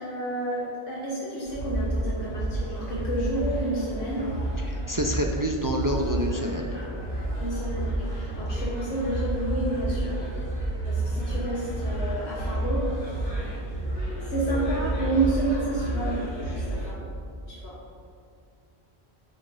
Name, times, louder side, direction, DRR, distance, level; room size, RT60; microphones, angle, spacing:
voice 1, 0.0-4.3 7.4-10.2 10.9-12.9 14.2-17.1 17.5-17.8, right 2 dB, 80° left, -5 dB, 1.5 m, -30 dB
sound 1, 1.4-16.9, right 1 dB, 50° left, 2.4 m, -30 dB
voice 2, 4.6-6.8 11.2-11.3, equal, 35° right, 2 dB, 0.3 m, -28 dB
8.9 x 4.4 x 5.3 m, 2.4 s
omnidirectional pair, 1.1 m